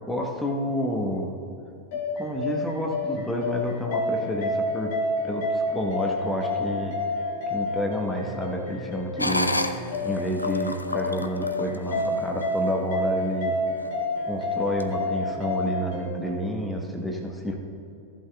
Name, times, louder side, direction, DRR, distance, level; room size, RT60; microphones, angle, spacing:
voice 1, 0.1-1.3 2.2-4.9 5.2-6.9 7.5-9.6 10.0-13.6 14.2-17.5, equal, 5° left, 1 dB, 1.2 m, -29 dB
sound 1, 1.9-16.1, left 2 dB, 50° left, 2.5 m, -29 dB
ekspres potwor monster, 9.2-12.6 13.2-13.3 13.8-14.2 14.7-14.8, left 1 dB, 85° left, 0.5 m, -31 dB
15.0 x 11.0 x 2.3 m, 2.7 s
figure-of-eight pair, 90°, 0 cm